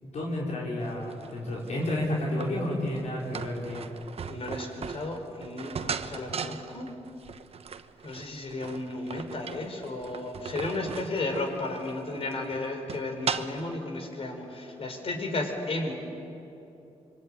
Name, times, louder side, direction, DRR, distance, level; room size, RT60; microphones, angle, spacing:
voice 1, 0.0-4.0, left 1 dB, 75° left, -4 dB, 5.3 m, -31 dB
sound 1, 0.9-13.7, right 6 dB, 60° right, 1.1 m, -38 dB
voice 2, 4.3-6.9 8.0-15.9, left 2 dB, 55° left, 4 dB, 4.8 m, -34 dB
25.5 x 24.0 x 9.1 m, 3.0 s
cardioid pair, 90°, 12 cm